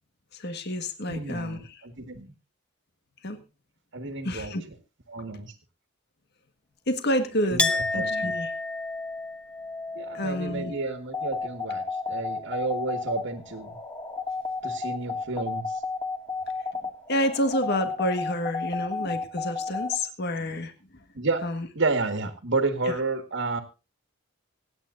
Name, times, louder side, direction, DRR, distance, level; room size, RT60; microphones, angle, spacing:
voice 1, 0.3-1.8 3.2-3.4 4.2-4.6 6.9-8.5 10.1-10.7 17.1-20.7 21.4-21.7 22.8-22.9, left 1 dB, 55° left, 8 dB, 1.6 m, -29 dB
voice 2, 1.1-2.3 3.9-4.5 5.1-5.5 7.5-8.4 10.0-13.8 14.6-15.8 21.1-21.4 21.7-23.6, right 3 dB, 65° right, 7 dB, 1.7 m, -31 dB
Chink clink, 7.6-13.1 13.4-14.3, left 2 dB, 5° left, 1.0 m, -32 dB
sound 1, 11.1-20.0, left 4 dB, 20° left, 2.2 m, -32 dB
25.5 x 9.3 x 2.6 m, 0.29 s
head